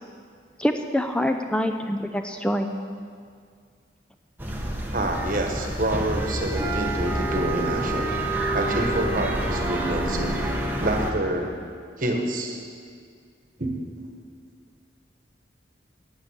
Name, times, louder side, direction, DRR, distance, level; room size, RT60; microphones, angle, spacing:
voice 1, 0.6-2.7, equal, 5° left, 5 dB, 0.5 m, -25 dB
sound 1, 4.4-11.1, right 1 dB, 10° right, 1.0 m, -27 dB
voice 2, 4.9-8.1 8.5-10.4 10.8-11.5 12.0-12.6 13.6-13.9, right 1 dB, 45° right, 3 dB, 1.3 m, -27 dB
9.2 x 8.0 x 8.4 m, 2.1 s
head